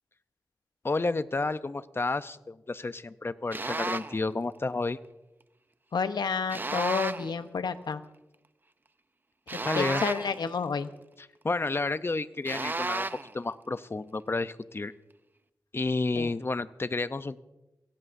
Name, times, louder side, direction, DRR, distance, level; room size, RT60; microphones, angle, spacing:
voice 1, 0.8-5.0 9.6-10.0 11.2-13.1 13.3-14.9 15.7-17.4, left 3 dB, 35° left, 13 dB, 0.6 m, -31 dB
sound 1, 3.5-4.2 6.5-7.4 9.5-10.5 12.5-13.3, right 2 dB, 30° right, 0.6 m, -33 dB
voice 2, 5.9-8.0 9.5-10.9 16.2-16.3, left 5 dB, 80° left, 10 dB, 0.9 m, -30 dB
23.5 x 17.0 x 2.7 m, 0.99 s
wide cardioid pair, 85°, 7 cm